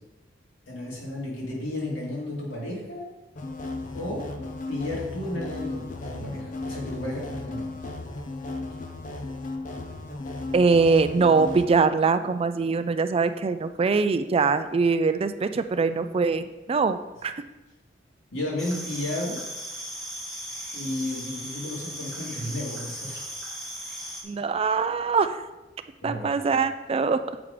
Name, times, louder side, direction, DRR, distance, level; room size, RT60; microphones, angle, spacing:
voice 1, 0.7-3.1 3.9-4.3 4.7-7.8 18.3-19.4 20.7-23.3 26.0-26.3, left 1 dB, 85° left, -4 dB, 2.4 m, -33 dB
sound 1, 3.4-11.7, left 2 dB, 45° left, 0.6 m, -35 dB
voice 2, 10.5-17.3 24.2-25.4 26.0-27.2, right 4 dB, 30° right, 10 dB, 0.3 m, -23 dB
sound 2, 18.6-24.2, equal, ahead, 1.0 m, -37 dB
7.0 x 5.0 x 5.0 m, 1.1 s
head